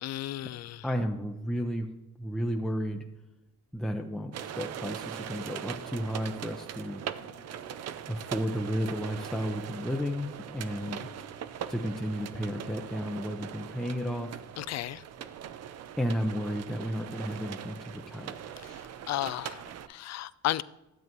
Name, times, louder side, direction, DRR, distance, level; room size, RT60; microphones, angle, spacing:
voice 1, 0.0-0.8 14.6-15.0 19.1-20.6, left 14 dB, 60° left, 18 dB, 0.4 m, -33 dB
voice 2, 0.8-1.9 2.2-3.0 3.7-4.3 4.6-7.0 8.1-11.1 11.7-14.3 16.0-18.6, equal, ahead, 2 dB, 0.7 m, -33 dB
sound 1, 4.3-19.9, right 9 dB, 55° right, 0.6 m, -41 dB
sound 2, 5.3-11.9, left 3 dB, 30° left, 1.1 m, -56 dB
12.0 x 7.9 x 3.0 m, 0.97 s
cardioid pair, 90°, 30 cm